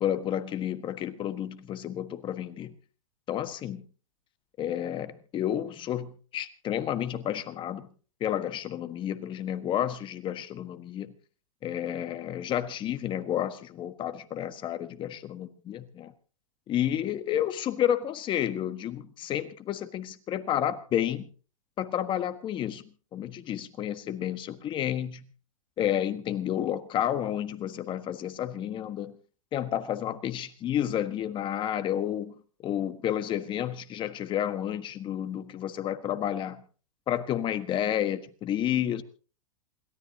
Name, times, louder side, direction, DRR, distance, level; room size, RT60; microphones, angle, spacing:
voice 1, 0.0-2.7 3.3-3.8 4.6-7.9 8.2-11.1 11.6-16.1 16.7-21.3 21.8-22.8 23.1-25.3 25.8-29.1 29.5-32.3 32.6-36.6 37.1-39.0, left 10 dB, 30° left, 11 dB, 1.4 m, -31 dB
28.0 x 13.5 x 2.8 m, 0.39 s
hypercardioid pair, 125°, 18 cm